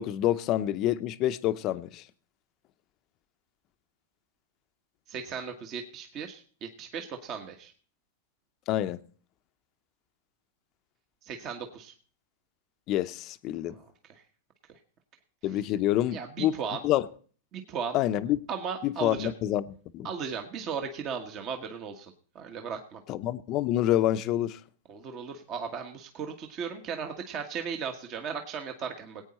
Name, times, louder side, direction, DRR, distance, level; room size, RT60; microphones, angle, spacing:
voice 1, 0.0-2.0 8.7-9.0 12.9-13.7 15.4-16.5 16.8-17.1 17.9-18.4 18.8-20.1 23.1-24.6, left 13 dB, 40° left, 0.7 m, -27 dB
voice 2, 5.1-7.7 11.2-11.9 13.7-13.8 15.5-15.6 16.1-16.8 17.5-18.0 18.5-19.3 20.0-23.0 24.9-29.2, right 6 dB, 35° right, 1.3 m, -36 dB
19.5 x 8.7 x 4.3 m
hypercardioid pair, 130°, 0 cm